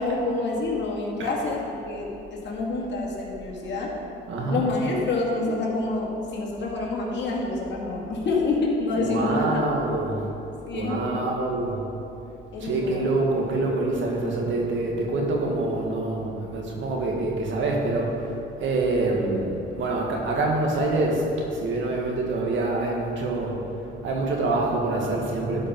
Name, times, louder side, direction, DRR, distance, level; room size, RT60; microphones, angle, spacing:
voice 1, 0.0-4.0 4.5-9.6 10.7-11.2 12.5-13.1, left 3 dB, 65° left, -3 dB, 2.1 m, -27 dB
voice 2, 4.3-4.7 8.9-10.3 10.7-11.8 12.6-18.3 18.6-23.6 23.8-25.7, right 2 dB, 75° right, -1 dB, 1.8 m, -26 dB
12.0 x 5.3 x 5.4 m, 2.8 s
cardioid pair, 90°, 20 cm